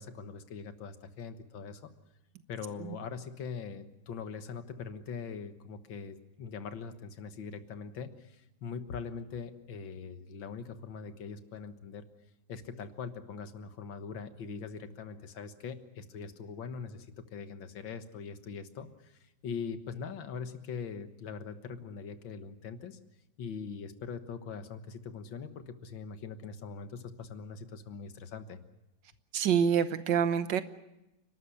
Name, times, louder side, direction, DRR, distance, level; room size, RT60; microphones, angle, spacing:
voice 1, 0.0-1.8 2.5-12.1 12.5-23.0 23.4-28.6, left 5 dB, 75° left, 9 dB, 2.1 m, -42 dB
voice 2, 29.3-30.6, right 8 dB, 65° right, 12 dB, 1.6 m, -27 dB
29.5 x 12.5 x 9.9 m, 0.94 s
omnidirectional pair, 2.1 m